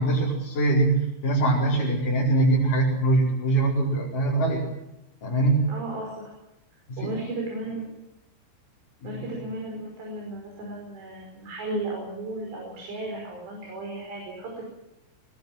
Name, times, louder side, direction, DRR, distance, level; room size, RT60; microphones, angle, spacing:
voice 1, 0.0-4.6 5.2-5.7 6.9-7.1 9.0-9.2, right 2 dB, 40° left, -7 dB, 6.5 m, -23 dB
voice 2, 5.7-6.3 7.0-7.9 9.0-14.6, right 2 dB, 60° right, -1 dB, 7.5 m, -35 dB
22.0 x 20.0 x 7.7 m, 0.89 s
omnidirectional pair, 5.7 m